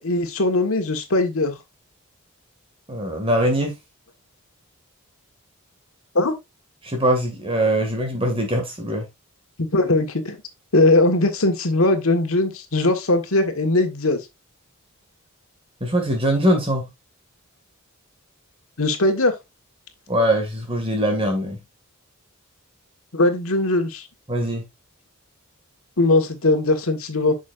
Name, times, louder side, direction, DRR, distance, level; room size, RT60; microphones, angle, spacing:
voice 1, 0.0-1.5 6.1-6.3 9.6-10.4 10.7-14.2 18.8-19.3 23.1-24.1 26.0-27.3, left 2 dB, 75° left, 1.5 m, -20 dB
voice 2, 2.9-3.7 6.8-9.0 15.8-16.8 20.1-21.6 24.3-24.6, right 1 dB, 25° right, 2.1 m, -22 dB
8.4 x 6.4 x 2.5 m
head